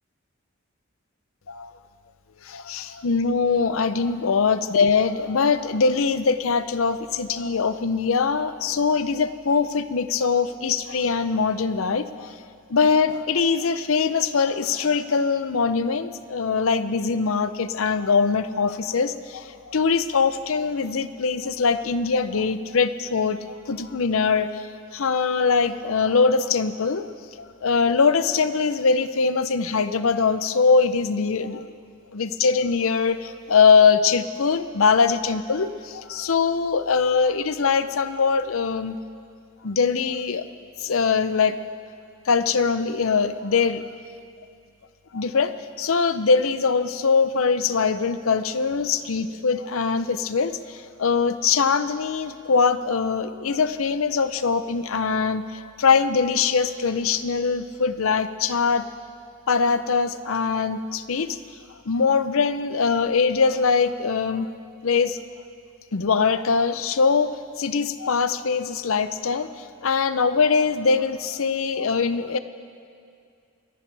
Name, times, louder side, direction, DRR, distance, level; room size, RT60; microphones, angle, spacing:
voice 1, 2.4-12.3 12.7-31.7 32.1-39.0 39.6-40.4 40.8-41.7 42.3-43.9 45.1-45.5 45.8-58.8 59.5-61.4 61.9-64.5 64.8-65.2 65.9-72.4, left 5 dB, 70° left, 12 dB, 0.6 m, -22 dB
27.5 x 10.5 x 3.4 m, 2.4 s
head